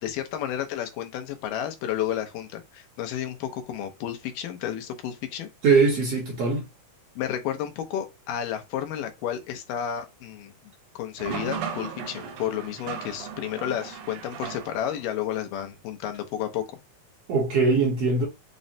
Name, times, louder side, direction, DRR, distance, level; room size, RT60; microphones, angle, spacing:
voice 1, 0.0-5.5 7.2-10.5 11.0-16.6, left 10 dB, 90° left, 2.4 m, -31 dB
voice 2, 5.6-6.6 17.3-18.3, right 4 dB, 65° right, 1.7 m, -21 dB
sound 1, 11.2-15.1, right 7 dB, 80° right, 1.4 m, -36 dB
6.0 x 2.1 x 2.6 m
omnidirectional pair, 3.7 m